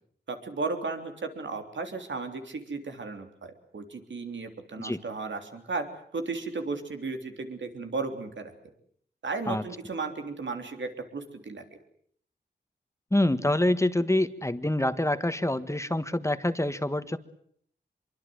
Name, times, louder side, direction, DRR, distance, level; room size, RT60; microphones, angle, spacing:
voice 1, 0.3-5.9 6.1-8.5 9.2-11.6, right 4 dB, 85° right, 6 dB, 3.4 m, -35 dB
voice 2, 13.1-17.2, left 1 dB, 15° left, 11 dB, 1.5 m, -26 dB
25.5 x 23.5 x 7.8 m, 0.63 s
wide cardioid pair, 60°, 19 cm